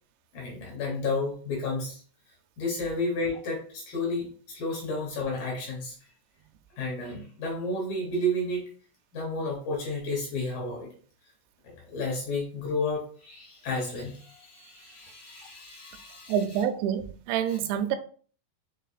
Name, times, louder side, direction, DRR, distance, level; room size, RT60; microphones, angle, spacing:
voice 1, 0.3-2.0 2.6-6.0 6.8-8.6 9.1-10.9 11.6-16.4, left 2 dB, 70° left, 2.4 m, -32 dB
voice 2, 16.3-18.0, right 9 dB, 85° right, 2.7 m, -27 dB
6.5 x 3.3 x 2.3 m
omnidirectional pair, 4.9 m